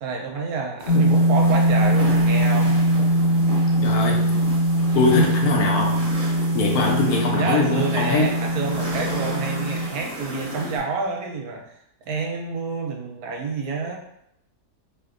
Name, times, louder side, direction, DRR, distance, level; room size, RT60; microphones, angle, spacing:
voice 1, 0.0-2.7 7.3-11.6 12.1-14.0, right 4 dB, 70° right, 1 dB, 1.0 m, -28 dB
sound 1, 0.8-10.8, equal, 50° right, 0.4 m, -34 dB
sound 2, 0.9-9.9, equal, 90° left, 1.5 m, -21 dB
voice 2, 3.8-4.3 4.9-6.0 6.5-8.3, left 3 dB, 70° left, 0 dB, 1.1 m, -22 dB
4.2 x 2.7 x 2.5 m, 0.78 s
omnidirectional pair, 1.8 m